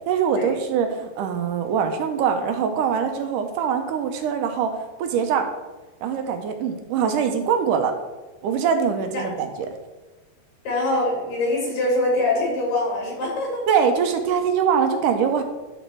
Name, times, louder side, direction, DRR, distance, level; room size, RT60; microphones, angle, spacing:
voice 1, 0.1-5.5 6.0-8.0 8.4-9.7 13.7-15.4, right 7 dB, 80° right, 6 dB, 2.2 m, -23 dB
voice 2, 10.6-13.7, left 1 dB, 75° left, -1 dB, 4.2 m, -23 dB
11.5 x 4.3 x 4.4 m, 1.2 s
omnidirectional pair, 3.9 m